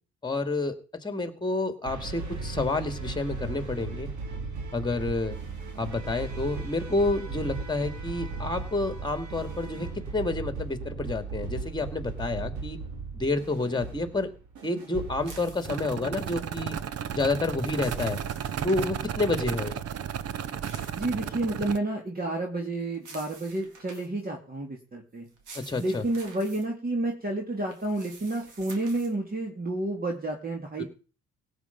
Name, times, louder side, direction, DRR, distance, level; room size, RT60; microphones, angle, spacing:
voice 1, 0.2-0.8 1.0-4.1 4.7-5.4 5.8-12.8 13.1-14.3 14.6-16.8 17.1-18.2 18.6-19.8 25.5-26.1 30.8-30.9, left 2 dB, 15° left, 9 dB, 2.4 m, -29 dB
sound 1, 1.8-15.9, right 4 dB, 70° right, 3.5 m, -37 dB
sound 2, 15.2-16.4 17.3-18.9 20.1-21.7 22.9-24.2 25.3-26.6 27.6-29.1, right 4 dB, 85° right, 3.7 m, -49 dB
sound 3, 15.6-21.8, right 8 dB, 55° right, 0.8 m, -33 dB
voice 2, 20.9-25.3 25.8-30.8, right 2 dB, 30° right, 1 dB, 2.9 m, -30 dB
17.0 x 8.2 x 5.4 m, 0.38 s
cardioid pair, 90°, 30 cm